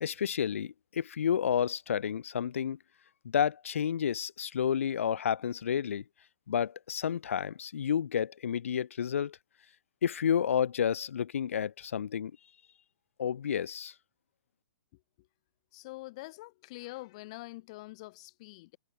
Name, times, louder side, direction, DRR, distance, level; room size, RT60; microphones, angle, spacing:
voice 1, 0.0-2.8 3.2-6.0 6.5-9.4 10.0-12.3 13.2-13.9, left 8 dB, 60° left, 0.7 m, -30 dB
voice 2, 15.7-18.8, left 21 dB, 25° left, 1.7 m, -45 dB
hypercardioid pair, 180°, 8 cm